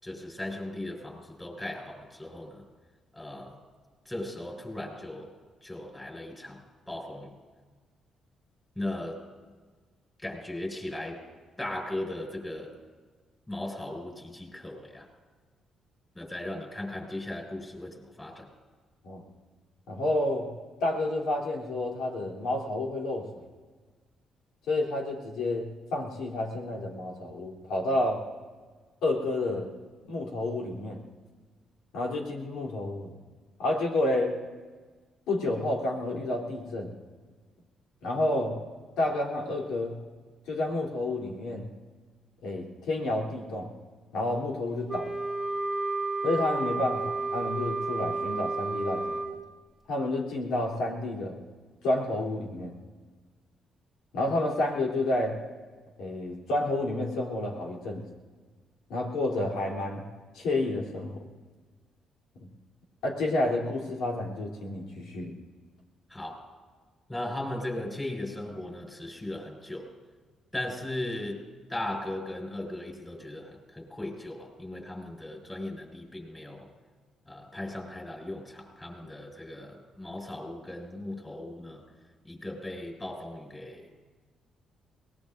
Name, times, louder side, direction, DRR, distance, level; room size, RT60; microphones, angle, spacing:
voice 1, 0.0-2.7 3.1-3.6 4.1-5.3 5.6-7.3 8.8-9.3 10.2-11.2 11.6-12.7 13.5-15.1 16.1-18.5 66.1-66.5 67.1-69.9 70.5-71.4 71.7-76.7 77.3-81.8 82.2-83.9, left 1 dB, 15° left, 0 dB, 5.4 m, -37 dB
voice 2, 19.9-20.5 20.8-23.5 24.7-28.2 29.0-29.7 30.1-31.0 31.9-33.1 33.6-34.4 35.3-36.9 38.0-38.6 39.0-40.0 40.5-41.7 42.4-43.7 44.1-45.2 46.2-49.2 49.9-51.4 51.8-52.7 54.1-55.4 56.0-58.0 58.9-60.0 60.3-61.2 62.4-62.5 63.0-65.3, left 2 dB, 85° left, -2 dB, 3.3 m, -30 dB
Wind instrument woodwind instrument, 44.9-49.3, right 3 dB, 5° right, 1.9 m, -31 dB
22.5 x 20.0 x 2.6 m, 1.4 s
cardioid pair, 90°, 0 cm